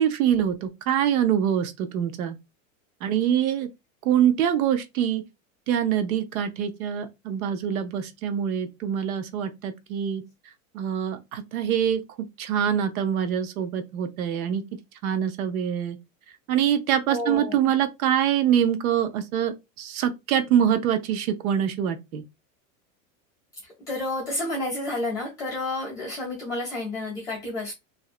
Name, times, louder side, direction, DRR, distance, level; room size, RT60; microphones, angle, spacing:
voice 1, 0.0-2.4 3.0-3.7 4.0-5.2 5.7-10.2 10.7-14.6 15.0-16.0 16.5-22.2, right 9 dB, 85° right, 0.6 m, -24 dB
voice 2, 17.1-17.6 23.9-27.7, left 2 dB, 10° left, 0.4 m, -30 dB
2.5 x 2.1 x 2.3 m
supercardioid pair, 175°, 41 cm